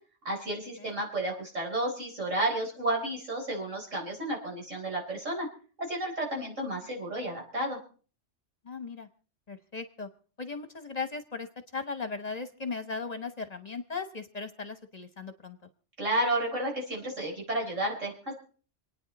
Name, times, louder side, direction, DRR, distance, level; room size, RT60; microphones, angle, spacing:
voice 1, 0.2-5.5 5.8-7.8 16.0-18.4, right 1 dB, 90° right, -1 dB, 4.5 m, -32 dB
voice 2, 8.6-9.1 9.5-10.1 10.4-15.6, left 4 dB, 35° left, 9 dB, 1.1 m, -37 dB
27.5 x 9.6 x 4.2 m, 0.41 s
omnidirectional pair, 1.3 m